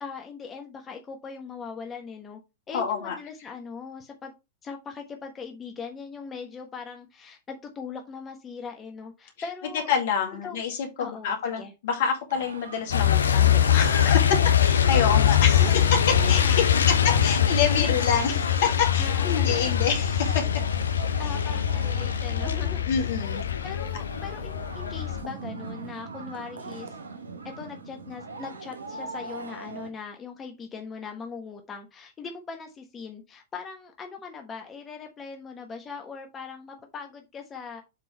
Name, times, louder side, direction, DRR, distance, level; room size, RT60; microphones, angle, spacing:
voice 1, 0.0-2.4 2.7-4.3 4.6-9.9 10.4-10.6 11.0-11.7 14.8-16.6 16.9-17.2 17.7-18.4 19.0-19.8 21.2-23.1 23.6-27.0 27.4-37.8, left 5 dB, 25° left, 4 dB, 1.3 m, -40 dB
voice 2, 2.7-3.2 9.9-15.9 16.3-16.9 17.2-20.5 21.2-21.5 22.9-23.4, left 7 dB, 60° left, 3 dB, 2.2 m, -27 dB
sound 1, 12.3-29.9, right 3 dB, 90° right, 1.1 m, -41 dB
Truck, 12.9-25.2, left 9 dB, 80° left, 0.8 m, -23 dB
7.3 x 3.8 x 4.3 m, 0.26 s
hypercardioid pair, 100°, 0 cm